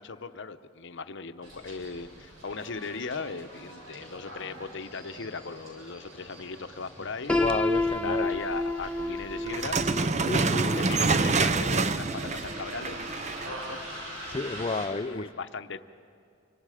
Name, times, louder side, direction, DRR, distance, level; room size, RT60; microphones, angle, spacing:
voice 1, 0.0-7.4 7.8-9.8 10.4-13.1 13.6-13.8 14.9-15.8, left 4 dB, 60° left, 9 dB, 0.8 m, -38 dB
Bus, 1.4-14.8, equal, 75° right, 7.9 m, -44 dB
voice 2, 7.3-8.3 10.2-10.8 14.3-15.3, left 3 dB, 25° left, 12 dB, 0.5 m, -31 dB
Piano, 7.3-13.1, left 2 dB, 5° left, 1.0 m, -31 dB
sound 1, 9.5-13.6, right 4 dB, 35° right, 0.6 m, -27 dB
29.5 x 25.5 x 5.0 m, 2.5 s
head